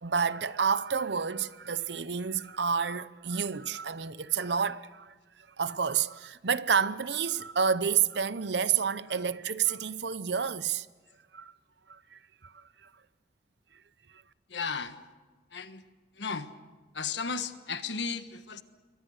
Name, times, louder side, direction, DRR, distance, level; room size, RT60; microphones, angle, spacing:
voice 1, 0.0-10.9 11.3-11.5 11.9-12.9, right 6 dB, 70° right, 0.8 m, -30 dB
voice 2, 14.5-15.0 15.5-15.8 16.1-16.5 16.9-18.6, left 5 dB, 75° left, 1.4 m, -35 dB
27.5 x 23.0 x 6.5 m
head